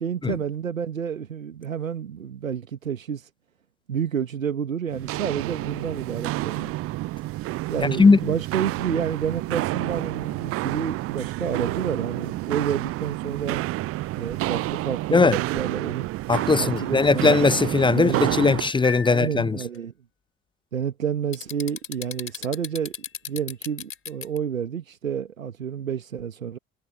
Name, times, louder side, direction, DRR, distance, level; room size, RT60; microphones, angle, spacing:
voice 1, 0.0-3.3 3.9-6.7 7.7-13.6 14.1-16.1 16.4-17.3 17.9-18.4 19.0-19.9 20.7-22.9 23.3-26.6, right 8 dB, 85° right, 1.7 m, -29 dB
Walk footsteps, 4.9-18.7, right 18 dB, 35° right, 0.5 m, -29 dB
voice 2, 7.8-8.3 15.1-15.4 16.3-19.6, left 4 dB, 10° left, 0.7 m, -19 dB
sound 1, 16.8-17.8 18.2-19.3 19.6-19.8 21.3-24.4, left 6 dB, 30° left, 4.0 m, -36 dB
figure-of-eight pair, 60°, 39 cm